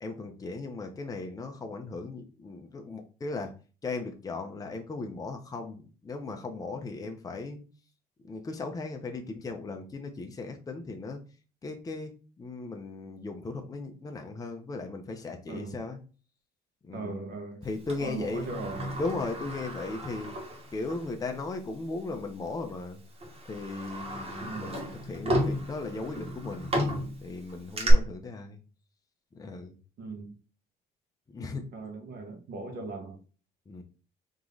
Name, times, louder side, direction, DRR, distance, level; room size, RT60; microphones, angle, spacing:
voice 1, 0.0-3.5 3.8-7.6 8.2-11.2 11.6-16.0 16.8-17.2 17.6-18.5 19.0-20.4 20.7-23.0 23.5-26.7 27.2-28.6 29.4-29.7 31.3-31.7 33.7-33.8, left 3 dB, 20° left, 0.7 m, -37 dB
voice 2, 15.5-15.8 16.9-17.6 18.0-19.0 24.4-24.8 30.0-30.3 31.7-33.2, right 3 dB, 60° right, 1.3 m, -38 dB
Sliding door, 17.9-21.1 21.5-21.6 22.5-22.7 23.2-27.9, equal, 35° right, 1.6 m, -34 dB
3.7 x 3.0 x 3.9 m
cardioid pair, 110°, 17 cm